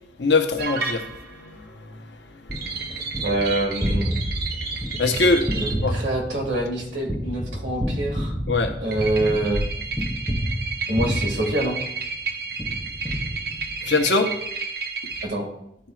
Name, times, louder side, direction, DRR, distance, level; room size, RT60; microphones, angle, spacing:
voice 1, 0.2-1.1 1.4-1.9 5.0-5.9 8.5-8.7 13.9-14.3, left 3 dB, 70° left, 0.8 m, -22 dB
sound 1, 0.6-1.4 2.5-5.9 8.9-15.2, right 5 dB, 60° right, 0.9 m, -32 dB
Gunshot gunfire, 2.5-12.2 12.6-14.0, equal, 5° right, 0.6 m, -29 dB
voice 2, 3.2-4.1 5.5-8.3 8.8-9.6 10.9-11.8 15.2-15.5, right 1 dB, 85° right, 1.9 m, -25 dB
11.5 x 4.4 x 2.3 m
head